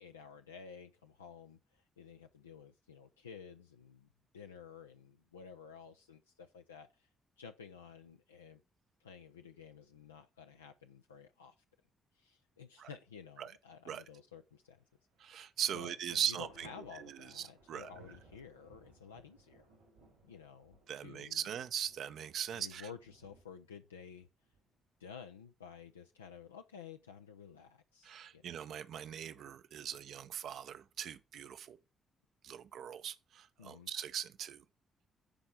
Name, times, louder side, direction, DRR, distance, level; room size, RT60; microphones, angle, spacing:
voice 1, 0.0-4.1 4.3-6.9 7.4-8.6 9.0-11.5 12.2-14.8 15.3-15.5 15.7-19.6 20.2-20.8 21.0-21.5 22.5-24.3 25.0-28.5 33.6-33.9, left 6 dB, 90° left, 0.4 m, -52 dB
Thunder, 14.6-15.4 15.8-25.4 26.9-27.7, right 2 dB, 85° right, 3.3 m, -64 dB
voice 2, 15.2-16.7 17.0-17.9 20.9-22.9 28.0-31.8 32.4-34.6, right 9 dB, 60° right, 0.6 m, -40 dB
10.0 x 4.3 x 4.4 m
figure-of-eight pair, 40°, 0 cm